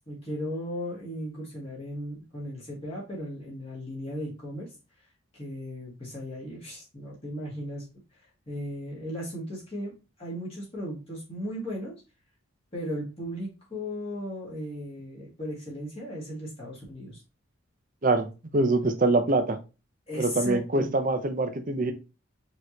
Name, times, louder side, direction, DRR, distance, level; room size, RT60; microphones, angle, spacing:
voice 1, 0.1-4.7 5.3-7.9 8.1-9.9 10.2-11.9 12.7-17.2 20.1-20.9, equal, 30° left, -5 dB, 1.9 m, -36 dB
voice 2, 18.5-19.6 20.2-21.9, right 2 dB, 40° right, 7 dB, 0.6 m, -24 dB
4.9 x 3.0 x 2.9 m, 0.30 s
head